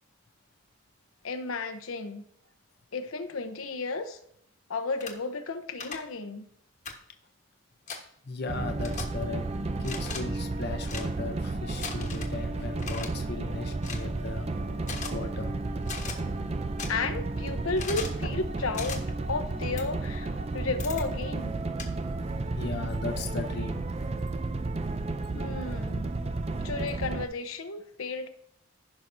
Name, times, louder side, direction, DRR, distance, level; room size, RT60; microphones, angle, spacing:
voice 1, 1.2-2.2 2.9-4.2 4.7-6.5 16.9-21.6 25.3-26.3 26.6-28.3, left 3 dB, 85° left, 6 dB, 0.8 m, -33 dB
sound 1, 5.0-5.1 5.8-6.0 6.8-7.0 7.9-8.0 8.8-9.0 9.8-10.2 10.8-11.1 11.8-12.3 12.8-13.1 13.8-14.0 14.8-15.1 15.8-16.1 16.8-16.9 17.8-18.2 18.7-19.0 19.8-19.9 20.8-21.0 21.8-21.9, left 5 dB, 35° left, 1.2 m, -37 dB
voice 2, 8.2-9.4 9.8-14.5 15.1-15.6 22.5-23.9, left 3 dB, 50° left, 4 dB, 0.6 m, -37 dB
sound 2, 8.5-27.3, right 2 dB, 30° right, 0.4 m, -32 dB
15.5 x 5.8 x 2.7 m, 0.70 s
head